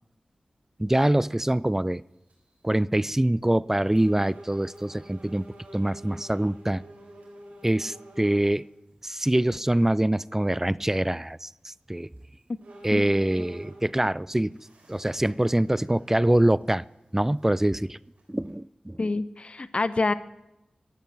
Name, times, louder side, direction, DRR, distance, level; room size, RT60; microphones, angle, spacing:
voice 1, 0.8-2.0 2.6-5.5 5.7-6.8 7.6-8.7 9.0-12.1 12.8-14.6 14.9-16.8 17.1-18.0 18.3-19.0, right 1 dB, 15° right, 21 dB, 0.4 m, -24 dB
sound 1, 1.5-1.6 2.1-2.5 3.2-3.3 3.9-8.5 9.1-9.2 11.6-11.7 12.2-12.3 12.6-14.1 14.5-16.3 16.6-16.7 17.4-17.5 18.2-18.5, right 1 dB, 85° right, 3.7 m, -48 dB
voice 2, 19.0-20.1, left 3 dB, 50° left, 15 dB, 0.6 m, -26 dB
12.0 x 8.5 x 7.6 m, 0.90 s
cardioid pair, 40°, 3 cm